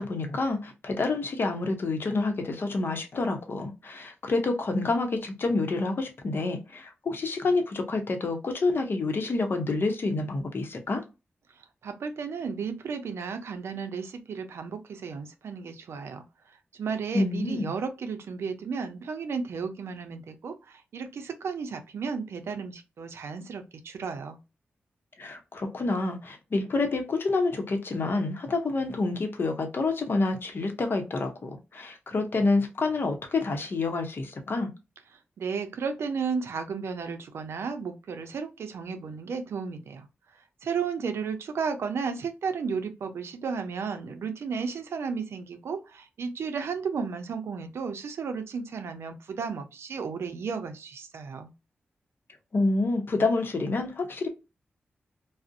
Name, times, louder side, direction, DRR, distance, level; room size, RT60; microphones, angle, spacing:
voice 1, 0.0-11.0 17.1-17.7 25.2-34.7 52.5-54.3, left 3 dB, 60° left, 0.7 m, -28 dB
voice 2, 11.8-16.2 16.7-24.4 35.4-40.1 40.6-51.5, right 5 dB, 80° right, 0.4 m, -33 dB
2.4 x 2.0 x 2.5 m
cardioid pair, 65°, 4 cm